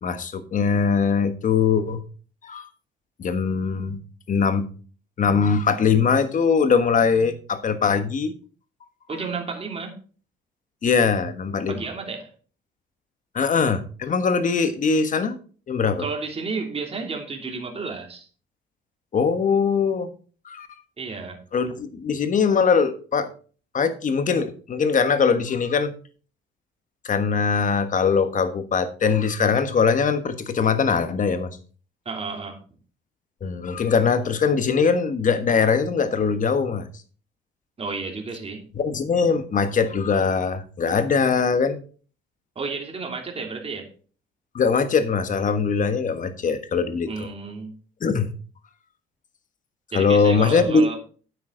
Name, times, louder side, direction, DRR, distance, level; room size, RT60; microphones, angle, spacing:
voice 1, 0.0-2.0 2.4-2.7 3.2-4.0 4.3-4.6 5.2-8.3 9.1-9.2 10.8-11.8 13.3-15.4 15.7-16.1 19.1-20.1 20.4-20.7 21.5-23.3 23.7-25.9 27.0-31.5 33.4-36.9 38.7-41.8 44.5-47.3 48.0-48.3 49.9-51.0, left 5 dB, 40° left, 10 dB, 1.3 m, -21 dB
voice 2, 9.1-10.0 11.7-12.3 16.0-18.3 21.0-21.4 32.0-32.6 37.8-38.6 42.5-43.9 47.1-47.7 49.9-51.0, right 4 dB, 30° right, 2 dB, 2.9 m, -32 dB
9.6 x 8.2 x 3.9 m, 0.39 s
cardioid pair, 115°, 21 cm